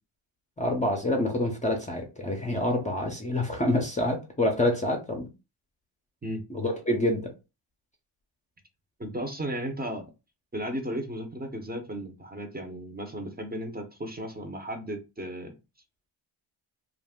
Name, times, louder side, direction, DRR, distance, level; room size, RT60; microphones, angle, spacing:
voice 1, 0.6-5.3 6.5-7.3, left 1 dB, 15° left, 0.6 m, -27 dB
voice 2, 9.0-10.1 10.5-15.5, right 1 dB, 20° right, 0.7 m, -35 dB
2.4 x 2.0 x 3.5 m
cardioid pair, 90°, 47 cm